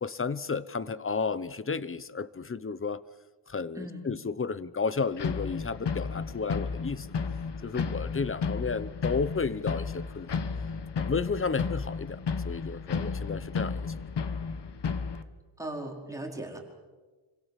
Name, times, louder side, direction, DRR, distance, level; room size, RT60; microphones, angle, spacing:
voice 1, 0.0-3.0 3.5-7.1 7.6-10.4 10.9-12.2 12.4-13.9, left 5 dB, 25° left, 16 dB, 0.9 m, -32 dB
sound 1, 5.2-15.2, left 5 dB, 55° left, 1.6 m, -33 dB
voice 2, 15.6-16.6, right 1 dB, 5° right, 0 dB, 4.6 m, -38 dB
27.5 x 25.5 x 7.5 m, 1.3 s
wide cardioid pair, 140°, 49 cm